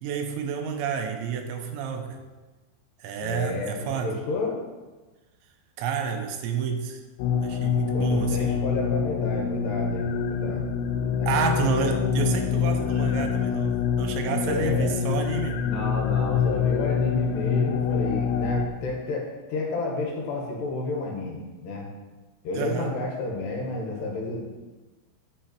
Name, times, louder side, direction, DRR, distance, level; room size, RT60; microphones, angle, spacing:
voice 1, 0.0-2.2 3.0-4.1 5.8-7.0 7.4-8.6 11.3-15.6 22.5-22.9, right 6 dB, 85° right, 5 dB, 2.9 m, -29 dB
voice 2, 3.2-4.6 7.9-10.6 11.2-11.3 13.2-13.3 14.4-14.9 15.6-21.9 22.5-24.4, left 2 dB, 70° left, -1 dB, 3.5 m, -31 dB
sound 1, 7.2-18.7, left 7 dB, 85° left, 3.2 m, -25 dB
9.5 x 6.8 x 4.5 m, 1.2 s
omnidirectional pair, 5.3 m